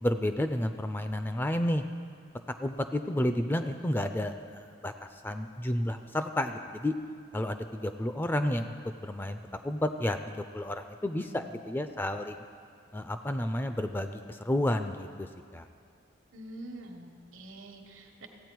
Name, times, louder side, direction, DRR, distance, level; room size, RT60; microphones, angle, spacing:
voice 1, 0.0-1.8 2.6-6.9 7.3-8.7 9.0-12.4 12.9-15.7, left 1 dB, 10° left, 8 dB, 0.3 m, -31 dB
voice 2, 16.3-18.3, right 1 dB, 80° right, 4 dB, 1.2 m, -45 dB
15.5 x 8.8 x 4.6 m, 2.3 s
head